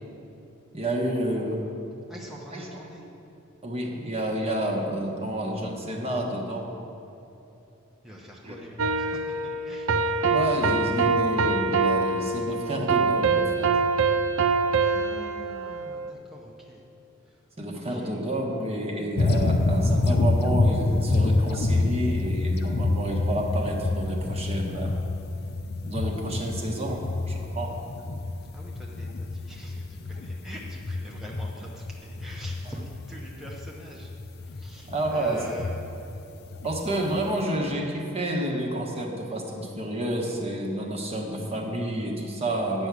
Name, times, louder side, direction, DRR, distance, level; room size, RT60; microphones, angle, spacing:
voice 1, 0.7-1.6 2.5-2.7 3.6-6.7 8.4-8.6 10.2-13.7 17.6-24.9 25.8-27.8 34.8-35.6 36.6-42.9, right 1 dB, 30° right, 0 dB, 1.2 m, -29 dB
voice 2, 2.1-3.0 8.0-10.1 14.8-16.8 17.2-17.4 17.7-18.2 28.5-34.1 34.4-35.7, equal, ahead, -4 dB, 0.9 m, -44 dB
sound 1, 8.8-16.1, right 4 dB, 65° right, 0.5 m, -24 dB
sound 2, 19.2-37.4, left 2 dB, 50° left, 0.5 m, -27 dB
9.8 x 6.1 x 8.2 m, 2.9 s
head